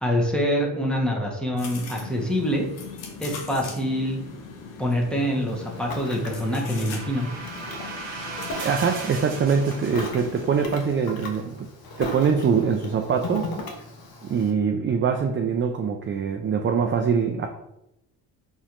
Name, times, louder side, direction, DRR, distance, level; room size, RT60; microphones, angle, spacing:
voice 1, 0.0-2.6 3.2-4.2 4.8-7.3, equal, ahead, -2 dB, 1.0 m, -25 dB
sound 1, 1.6-10.9, left 4 dB, 85° left, 0.8 m, -40 dB
Ocean, 5.5-14.5, left 2 dB, 55° left, 0.8 m, -38 dB
sound 2, 5.5-10.8, right 3 dB, 75° right, 0.9 m, -38 dB
voice 2, 8.6-11.7 12.0-13.5 14.2-17.5, right 6 dB, 30° right, 4 dB, 0.4 m, -23 dB
4.0 x 3.0 x 2.5 m, 0.85 s
supercardioid pair, 55°, 43 cm